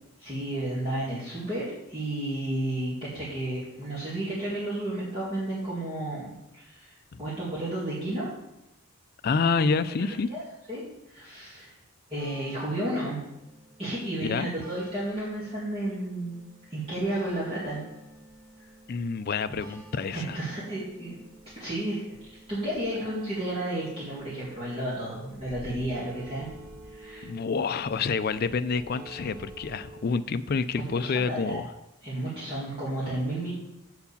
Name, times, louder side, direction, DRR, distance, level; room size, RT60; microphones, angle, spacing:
voice 1, 0.2-8.3 10.3-10.4 10.7-11.7 12.1-13.2 13.8-16.4 16.7-17.9 20.1-21.2 21.6-22.2 22.5-26.5 26.9-27.3 30.8-31.6 32.0-33.5, right 1 dB, 25° right, -9 dB, 2.2 m, -32 dB
voice 2, 9.2-10.3 14.2-14.5 18.9-20.4 27.2-31.7, left 5 dB, 45° left, 12 dB, 0.3 m, -28 dB
sound 1, 12.2-30.1, right 2 dB, 90° right, 2.7 m, -49 dB
7.8 x 4.7 x 7.0 m, 0.91 s
head